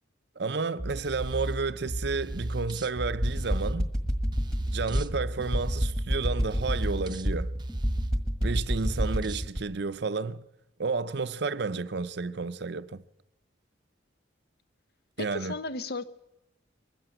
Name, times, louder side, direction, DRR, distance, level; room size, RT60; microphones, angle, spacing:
voice 1, 0.4-3.9 4.7-7.5 8.4-10.4 10.8-13.0 15.2-15.5, right 4 dB, 60° right, 0.6 m, -31 dB
sound 1, 0.8-9.5, right 1 dB, 25° right, 0.8 m, -35 dB
sound 2, 3.2-9.6, equal, 5° left, 1.6 m, -30 dB
voice 2, 15.2-16.0, left 2 dB, 55° left, 1.0 m, -34 dB
21.5 x 15.5 x 7.8 m
head